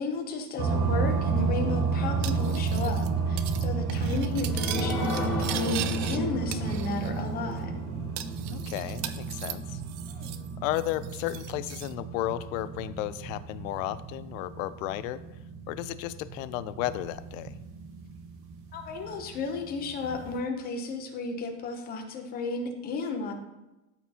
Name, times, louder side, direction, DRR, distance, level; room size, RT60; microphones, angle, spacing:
voice 1, 0.0-7.7 10.1-10.4 18.7-23.3, left 4 dB, 25° left, 4 dB, 0.7 m, -34 dB
sound 1, 0.6-20.4, right 5 dB, 30° right, 0.8 m, -32 dB
Cutlery silverware, 2.2-3.1 3.4-3.6 3.9-6.2 6.5-7.2 7.5-7.6 8.2-10.5 10.7-11.9, right 12 dB, 60° right, 0.5 m, -39 dB
sound 2, 4.0-11.0 11.5-11.6 11.9-12.0, left 1 dB, ahead, 1.4 m, -36 dB
voice 2, 8.5-9.8 10.6-15.2 15.7-17.5, left 15 dB, 75° left, 14 dB, 0.5 m, -33 dB
13.0 x 4.3 x 2.8 m, 1.0 s
supercardioid pair, 170°, 41 cm